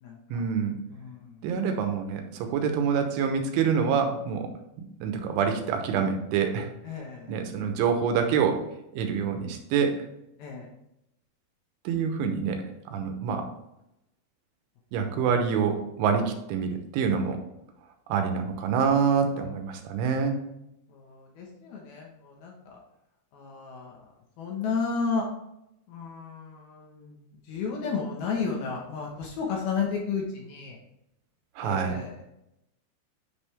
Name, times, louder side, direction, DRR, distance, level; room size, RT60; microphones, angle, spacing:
voice 1, 0.3-0.8 1.4-4.5 5.0-6.7 7.3-8.6 8.9-10.0 11.9-13.5 14.9-17.4 18.1-20.4 31.6-32.0, right 6 dB, 85° right, 5 dB, 3.4 m, -26 dB
voice 2, 0.9-1.3 6.8-7.4 10.4-10.7 20.9-22.5 23.3-23.9 24.4-25.3 25.9-27.2 27.5-30.8 31.6-32.2, left 5 dB, 70° left, -1 dB, 2.5 m, -32 dB
9.4 x 5.5 x 3.3 m, 0.84 s
omnidirectional pair, 5.5 m